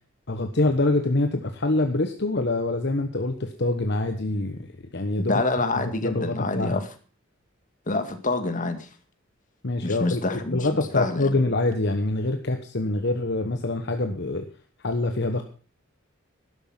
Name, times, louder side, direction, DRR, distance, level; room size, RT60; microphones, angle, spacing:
voice 1, 0.3-4.7 4.9-5.4 5.8-6.8 9.6-14.4 14.8-15.4, left 2 dB, 55° left, 6 dB, 1.2 m, -25 dB
voice 2, 5.2-6.9 7.9-8.9 9.8-11.3, left 2 dB, 40° left, 8 dB, 2.1 m, -27 dB
13.0 x 11.5 x 5.9 m, 0.37 s
head